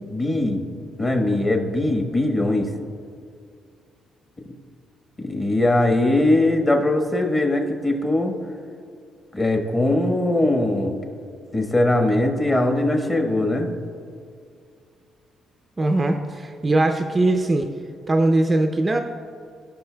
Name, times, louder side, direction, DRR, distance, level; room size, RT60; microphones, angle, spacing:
voice 1, 0.1-0.6 1.0-2.7 4.4-4.5 5.2-8.3 9.3-11.0 11.5-13.7, left 1 dB, 25° left, 3 dB, 1.2 m, -21 dB
voice 2, 15.8-17.7 18.1-19.0, right 2 dB, 25° right, 5 dB, 0.4 m, -20 dB
15.0 x 5.7 x 2.2 m, 2.3 s
cardioid pair, 90°, 0 cm